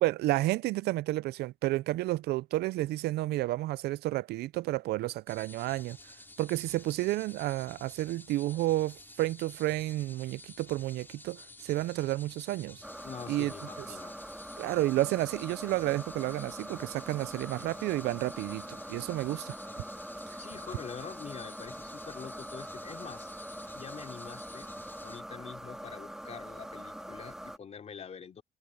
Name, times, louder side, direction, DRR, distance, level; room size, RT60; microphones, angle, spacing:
voice 1, 0.0-6.0 6.4-12.8 13.3-13.5 14.6-19.6, right 17 dB, 75° right, 0.5 m, -31 dB
sound 1, 5.3-25.2, left 2 dB, 10° left, 3.2 m, -52 dB
sound 2, 12.8-27.6, equal, 5° right, 2.0 m, -43 dB
voice 2, 13.0-14.1 20.4-23.3 23.7-24.7 25.0-28.4, left 7 dB, 40° left, 3.6 m, -45 dB
cardioid pair, 110°, 17 cm